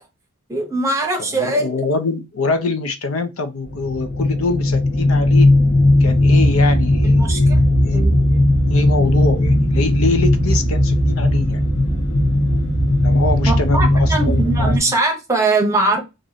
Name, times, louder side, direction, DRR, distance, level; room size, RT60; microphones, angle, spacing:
voice 1, 0.5-1.7 7.0-7.7 7.9-8.4 9.0-9.1 13.5-16.0, right 2 dB, 15° right, 0.9 m, -21 dB
voice 2, 1.3-5.5 6.0-8.1 8.7-11.6 13.0-15.0, left 3 dB, 75° left, 0.6 m, -24 dB
sound 1, 3.7-14.8, left 1 dB, 55° left, 1.3 m, -16 dB
2.9 x 2.6 x 3.9 m
head